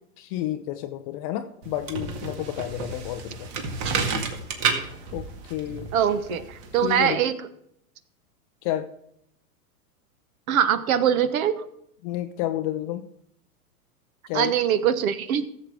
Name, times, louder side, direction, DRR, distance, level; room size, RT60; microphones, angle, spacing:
voice 1, 0.2-3.5 5.1-5.9 6.8-7.2 8.6-8.9 12.0-13.1 14.3-14.6, left 13 dB, 25° left, 9 dB, 0.4 m, -30 dB
sound 1, 1.6-7.1, right 5 dB, 45° right, 2.0 m, -31 dB
voice 2, 5.9-7.3 10.5-11.7 14.3-15.5, right 9 dB, 60° right, 14 dB, 1.2 m, -23 dB
15.5 x 7.4 x 3.6 m, 0.75 s
hypercardioid pair, 120°, 47 cm